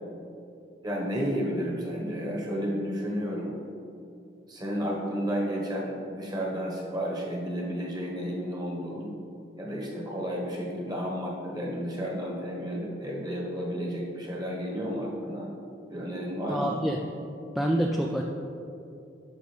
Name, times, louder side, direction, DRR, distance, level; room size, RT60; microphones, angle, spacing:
voice 1, 0.8-3.5 4.5-9.1 9.6-15.5 15.9-16.8, equal, 20° right, -3 dB, 1.3 m, -32 dB
voice 2, 16.5-17.0 17.5-18.2, equal, ahead, 0 dB, 0.3 m, -26 dB
12.0 x 5.1 x 3.4 m, 2.7 s
head